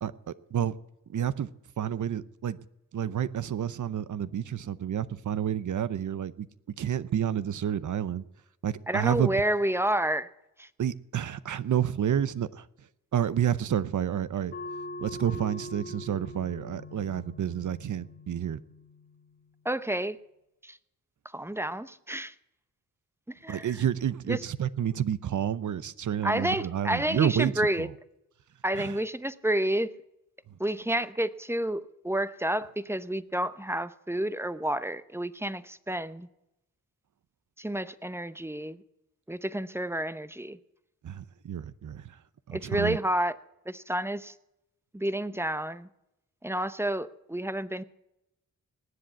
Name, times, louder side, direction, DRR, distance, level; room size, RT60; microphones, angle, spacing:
voice 1, 0.0-0.7 1.1-1.5 1.8-2.6 2.9-6.5 6.8-8.2 8.6-9.3 10.8-12.7 13.1-14.5 15.0-18.6 23.5-27.9 28.7-29.0 30.5-30.6 41.0-42.2 42.5-43.0, right 9 dB, 65° right, 0.7 m, -29 dB
voice 2, 8.9-10.3 10.6-10.7 19.6-20.2 20.6-20.8 21.3-22.3 23.3-23.7 24.3-24.4 26.2-27.9 28.6-29.9 30.6-36.3 37.6-38.8 39.3-40.6 42.5-43.4 43.7-44.3 44.9-45.9 46.4-47.8, right 1 dB, 10° right, 0.8 m, -30 dB
sound 1, 14.5-19.6, left 2 dB, 35° left, 1.2 m, -43 dB
19.5 x 7.8 x 8.2 m
cardioid pair, 65°, 32 cm